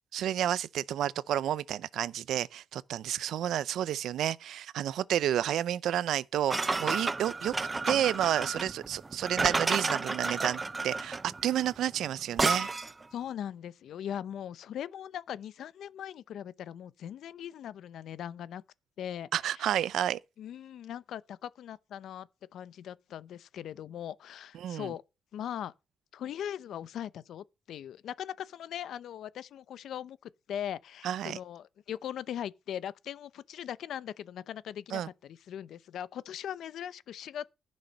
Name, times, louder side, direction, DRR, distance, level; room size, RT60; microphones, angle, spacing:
voice 1, 0.1-7.5 7.9-12.7 19.3-20.2 24.6-24.9 31.0-31.4 34.9-35.1, right 11 dB, 80° right, 0.6 m, -30 dB
sound 1, 6.5-13.0, right 3 dB, 20° right, 0.6 m, -31 dB
voice 2, 13.1-18.6 19.0-19.6 20.4-22.3 22.5-25.0 25.3-25.7 26.1-37.4, left 10 dB, 70° left, 0.7 m, -40 dB
15.5 x 6.4 x 5.3 m
cardioid pair, 140°, 0 cm